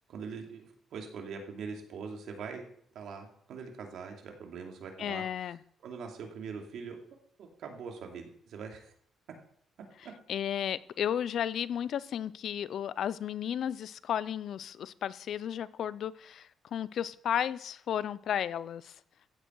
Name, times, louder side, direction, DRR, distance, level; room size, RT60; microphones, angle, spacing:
voice 1, 0.1-2.6 2.9-5.6 5.8-7.0 7.4-8.9 10.0-10.1, right 5 dB, 75° right, 2 dB, 2.8 m, -42 dB
voice 2, 5.0-5.6 10.3-18.9, left 9 dB, 65° left, 18 dB, 0.6 m, -33 dB
15.0 x 8.8 x 4.7 m, 0.64 s
cardioid pair, 90°, 0 cm